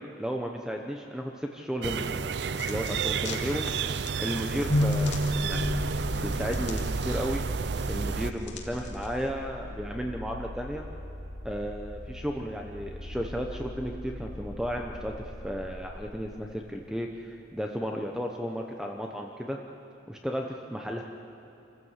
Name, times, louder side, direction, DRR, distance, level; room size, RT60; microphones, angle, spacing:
voice 1, 0.0-2.4 2.7-3.6 4.2-7.4 7.9-10.8 11.4-15.1 15.4-19.6 20.1-21.0, equal, 5° right, 2 dB, 0.9 m, -34 dB
sound 1, 1.8-8.3, right 5 dB, 60° right, 0.5 m, -31 dB
sound 2, 2.5-9.3, left 5 dB, 65° left, 2.3 m, -45 dB
sound 3, 4.7-16.8, left 1 dB, 40° left, 2.4 m, -35 dB
26.5 x 15.0 x 8.2 m, 2.9 s
head